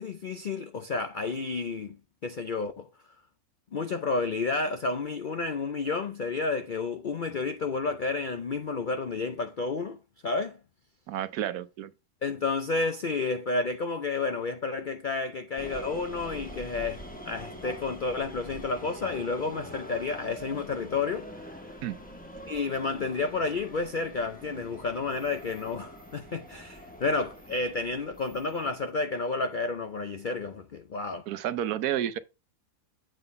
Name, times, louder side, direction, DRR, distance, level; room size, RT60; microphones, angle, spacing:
voice 1, 0.0-2.0 2.2-2.9 3.7-10.6 12.2-21.6 22.5-31.3, left 3 dB, 65° left, 0.4 m, -31 dB
voice 2, 11.1-11.9 21.8-22.0 31.3-32.2, right 11 dB, 80° right, 1.2 m, -30 dB
sound 1, 15.6-28.9, equal, 5° left, 1.1 m, -44 dB
7.8 x 3.8 x 5.2 m
omnidirectional pair, 1.6 m